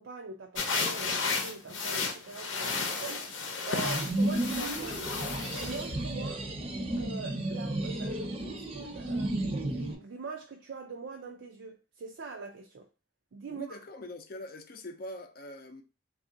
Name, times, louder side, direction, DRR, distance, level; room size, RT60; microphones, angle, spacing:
voice 1, 0.0-3.4 3.6-5.0 5.6-6.5 7.0-12.9 13.3-13.8, right 4 dB, 80° right, 0.5 m, -43 dB
sound 1, 0.5-5.9, left 4 dB, 90° left, 0.8 m, -33 dB
sound 2, 3.8-9.9, right 1 dB, 30° right, 0.6 m, -33 dB
voice 2, 13.5-15.8, left 1 dB, 50° left, 0.5 m, -43 dB
3.4 x 2.4 x 3.7 m
head